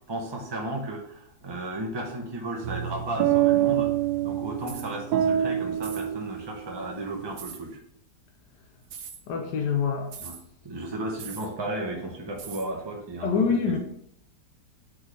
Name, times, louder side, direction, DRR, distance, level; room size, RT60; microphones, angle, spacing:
voice 1, 0.1-3.9 4.2-7.8 10.2-10.4 10.6-13.8, right 1 dB, 30° right, -1 dB, 0.5 m, -34 dB
sound 1, 2.6-7.0, right 11 dB, 75° right, 1.1 m, -26 dB
sound 2, 4.6-4.9 5.8-6.1 7.4-7.6 8.8-9.2 10.1-10.4 11.2-11.5 12.4-12.7, right 7 dB, 60° right, 0.8 m, -41 dB
voice 2, 9.3-10.1 13.2-13.8, left 5 dB, 80° left, 3 dB, 1.3 m, -25 dB
4.7 x 4.3 x 5.0 m, 0.71 s
omnidirectional pair, 1.8 m